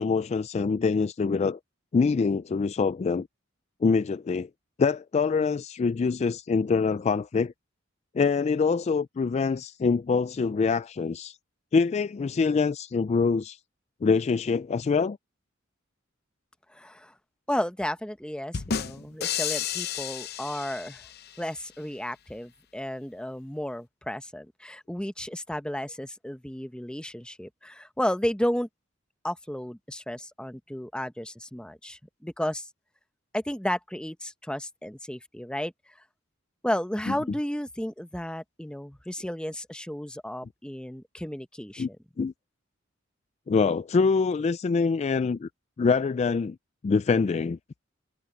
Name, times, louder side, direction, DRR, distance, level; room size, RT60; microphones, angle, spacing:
voice 1, 0.0-1.6 1.9-3.3 3.8-4.5 4.8-7.5 8.1-11.4 11.7-13.6 14.0-15.2 41.8-41.9 42.2-42.3 43.5-45.5 45.8-46.6 46.8-47.6, left 4 dB, 35° left, 0.3 m, -25 dB
voice 2, 16.7-17.1 17.5-21.1 21.4-28.7 29.2-32.7 33.3-36.0 36.6-42.0, equal, 5° left, 0.9 m, -33 dB
sound 1, 18.5-21.4, left 8 dB, 55° left, 0.7 m, -32 dB
head